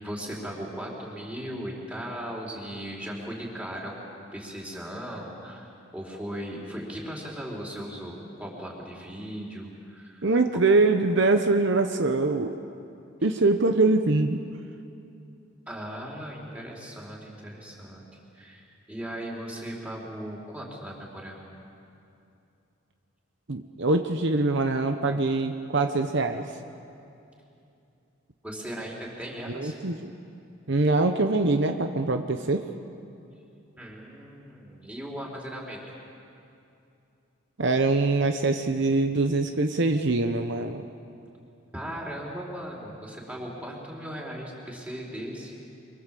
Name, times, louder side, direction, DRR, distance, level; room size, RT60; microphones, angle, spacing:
voice 1, 0.0-10.6 15.7-18.0 18.3-18.6 18.9-21.5 28.4-29.8 33.8-35.8 41.7-45.5, equal, 5° right, -3 dB, 4.3 m, -38 dB
voice 2, 10.2-12.5 13.2-14.4 23.5-26.5 29.5-30.1 30.7-32.7 37.6-40.8, right 3 dB, 60° right, 6 dB, 1.0 m, -23 dB
25.5 x 24.0 x 7.7 m, 2.7 s
head